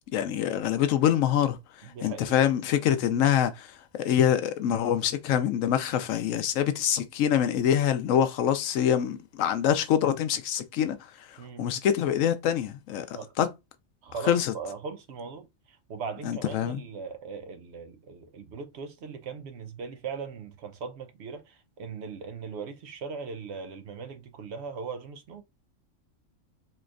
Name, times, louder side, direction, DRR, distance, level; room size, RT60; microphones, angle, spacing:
voice 1, 0.1-1.6 2.0-11.0 11.3-13.1 13.4-13.5 14.3-14.5 16.2-16.8, left 9 dB, 90° left, 1.0 m, -25 dB
voice 2, 1.8-2.4 11.4-11.6 13.1-13.3 14.0-25.4, right 5 dB, 60° right, 0.9 m, -39 dB
4.3 x 3.1 x 2.5 m
omnidirectional pair, 1.3 m